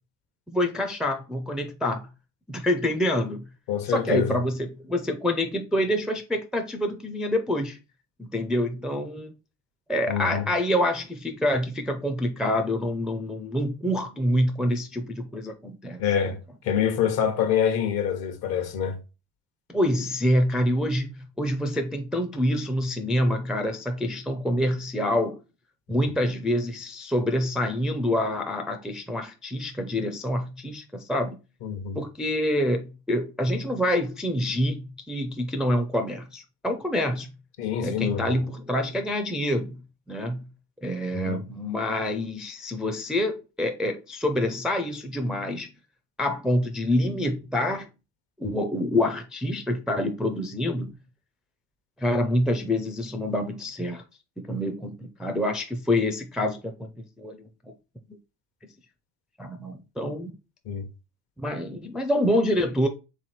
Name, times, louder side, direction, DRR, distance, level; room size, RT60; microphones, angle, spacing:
voice 1, 0.5-2.1 2.5-3.5 3.9-7.8 8.2-9.3 9.9-16.3 19.7-25.4 25.9-31.4 31.9-37.3 37.8-39.8 40.1-40.5 40.8-45.7 46.2-47.9 48.4-50.9 52.0-54.0 54.4-57.7 59.4-60.3 61.4-62.9, left 1 dB, ahead, 0.4 m, -26 dB
voice 2, 3.7-4.4 10.1-10.5 16.0-19.0 31.6-32.0 37.6-38.4 41.1-41.4 60.7-60.9, left 8 dB, 60° left, 1.1 m, -26 dB
3.5 x 3.2 x 4.2 m
supercardioid pair, 105°, 42 cm